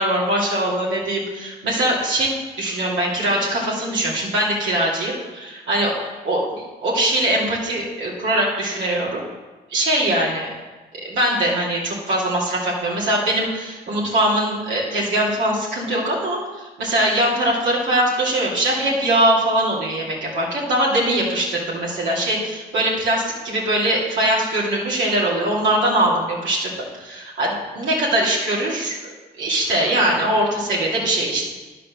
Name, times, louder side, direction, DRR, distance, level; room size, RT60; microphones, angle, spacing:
voice 1, 0.0-2.3 2.6-9.2 9.7-10.5 11.0-29.0 29.4-31.5, right 1 dB, 80° right, -5 dB, 2.7 m, -22 dB
10.5 x 4.9 x 6.4 m, 1.2 s
cardioid pair, 75°, 19 cm